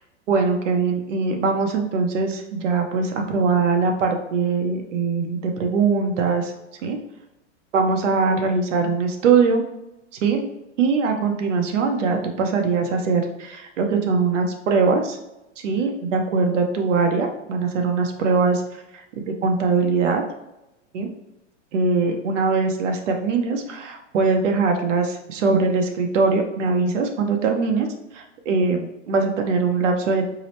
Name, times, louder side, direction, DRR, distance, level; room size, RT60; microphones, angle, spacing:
voice 1, 0.3-6.5 6.8-7.0 7.7-9.6 10.2-10.5 10.8-15.2 15.6-18.6 18.9-19.0 19.4-20.2 20.9-21.1 21.7-27.9 28.1-30.2, right 4 dB, 75° right, 4 dB, 0.8 m, -21 dB
4.7 x 2.1 x 3.0 m, 0.92 s
supercardioid pair, 175°, 37 cm